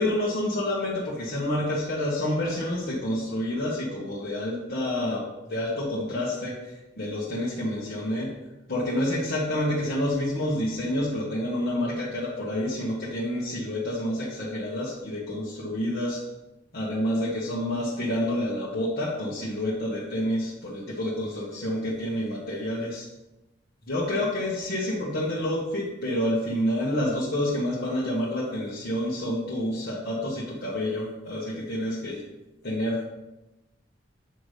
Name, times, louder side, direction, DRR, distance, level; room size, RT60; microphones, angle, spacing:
voice 1, 0.0-8.3 8.7-16.2 16.7-23.1 23.9-32.2 32.6-33.0, left 1 dB, 55° left, -7 dB, 1.4 m, -28 dB
7.9 x 6.0 x 3.3 m, 1.0 s
head